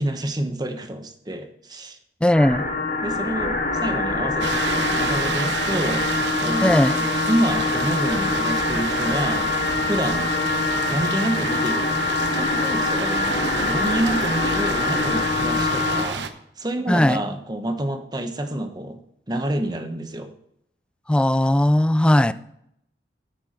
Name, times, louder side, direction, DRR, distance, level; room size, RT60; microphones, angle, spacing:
voice 1, 0.0-2.5 3.0-6.1 6.4-6.8 7.3-9.5 9.9-10.3 10.9-11.9 12.3-16.3 16.6-19.0 19.3-20.3, right 1 dB, 25° right, 7 dB, 1.0 m, -28 dB
voice 2, 2.2-2.6 6.6-7.0 16.9-17.2 21.1-22.3, left 1 dB, 5° left, 15 dB, 0.3 m, -18 dB
sound 1, 2.3-16.1, left 3 dB, 60° left, 3.9 m, -24 dB
sound 2, 4.4-16.3, right 5 dB, 85° right, 0.9 m, -30 dB
9.9 x 8.1 x 4.3 m, 0.74 s
head